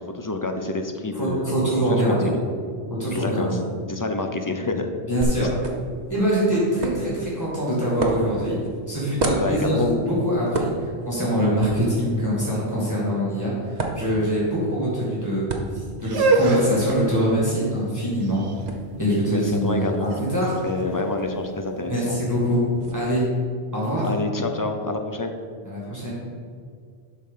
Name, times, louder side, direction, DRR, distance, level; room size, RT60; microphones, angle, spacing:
voice 1, 0.0-2.4 3.1-3.6 3.9-4.9 5.4-5.5 9.3-9.9 19.3-20.1 20.6-22.2 24.0-25.3, left 2 dB, 25° left, 5 dB, 0.5 m, -28 dB
voice 2, 1.1-2.3 2.9-3.6 5.1-5.5 6.1-8.6 8.9-18.5 19.0-20.6 21.8-22.7 22.9-23.3 23.7-24.1 25.6-26.1, equal, 15° right, -7 dB, 2.2 m, -24 dB
sound 1, 5.2-22.9, right 2 dB, 45° right, 0.9 m, -34 dB
sound 2, 16.0-21.9, right 3 dB, 75° right, 1.0 m, -26 dB
11.0 x 3.8 x 5.6 m, 2.2 s
omnidirectional pair, 1.1 m